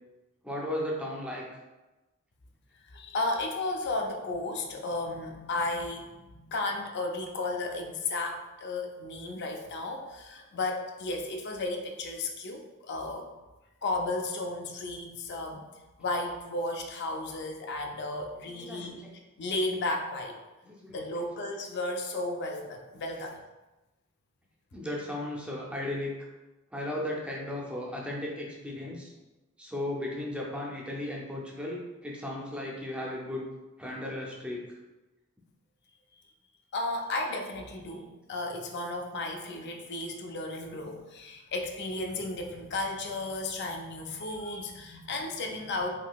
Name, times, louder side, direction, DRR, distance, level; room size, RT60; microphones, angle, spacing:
voice 1, 0.4-1.4 18.5-19.2 20.6-21.0 22.9-23.0 24.7-26.3 26.7-29.1 29.6-33.4 33.8-34.8, left 1 dB, 5° right, -2 dB, 0.5 m, -36 dB
voice 2, 2.9-13.3 13.8-15.7 16.0-19.0 19.4-20.4 20.9-23.4 36.7-45.9, left 2 dB, 55° left, 3 dB, 0.4 m, -34 dB
3.7 x 2.7 x 2.3 m, 1.1 s
head